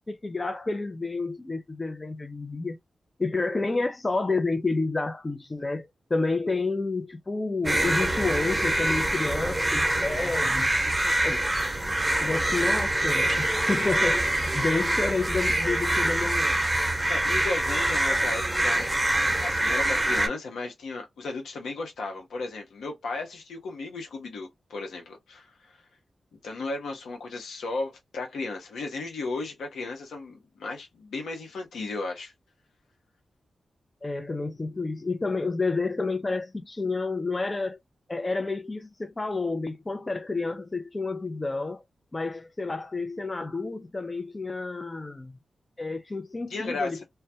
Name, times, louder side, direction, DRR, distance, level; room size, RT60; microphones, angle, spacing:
voice 1, 0.1-2.8 3.2-10.7 11.2-11.5 12.2-16.9 34.0-37.8 38.1-41.8 42.1-45.4 45.8-47.0, left 3 dB, 35° left, 0.5 m, -30 dB
sound 1, 7.6-20.3, right 1 dB, 15° right, 0.9 m, -25 dB
voice 2, 17.1-18.9 19.4-25.7 26.3-32.3 46.5-47.0, left 3 dB, 85° left, 0.8 m, -35 dB
2.2 x 2.2 x 2.7 m
supercardioid pair, 40°, 0 cm